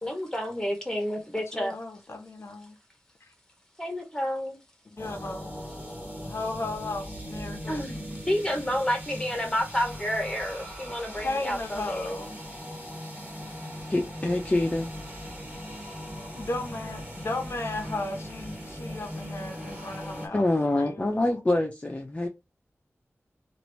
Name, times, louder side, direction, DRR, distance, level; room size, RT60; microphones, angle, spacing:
voice 1, 0.0-1.8 3.8-4.6 7.7-12.1, equal, 10° left, 1.2 m, -30 dB
voice 2, 1.3-2.8 3.2-3.3 4.9-5.6 6.2-7.8 11.2-12.4 16.3-20.5 20.7-21.4, left 2 dB, 65° left, 0.7 m, -35 dB
sound 1, 5.0-20.3, equal, 30° right, 1.6 m, -39 dB
voice 3, 13.9-14.9 20.3-22.3, left 2 dB, 30° left, 0.7 m, -25 dB
2.9 x 2.6 x 3.1 m
wide cardioid pair, 85°, 5 cm